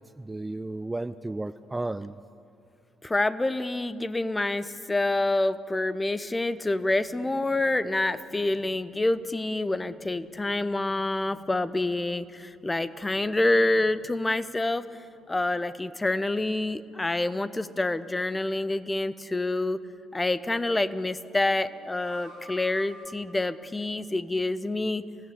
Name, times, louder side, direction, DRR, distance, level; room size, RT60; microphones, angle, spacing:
voice 1, 0.0-2.2, right 2 dB, 15° right, 14 dB, 0.6 m, -33 dB
voice 2, 3.0-14.9 15.3-19.8 20.1-25.0, left 2 dB, 15° left, 14 dB, 1.1 m, -27 dB
sound 1, 6.5-14.3 14.6-14.7 21.5-23.0, equal, 80° right, 6.7 m, -53 dB
26.5 x 17.0 x 9.8 m, 2.5 s
figure-of-eight pair, 45°, 0 cm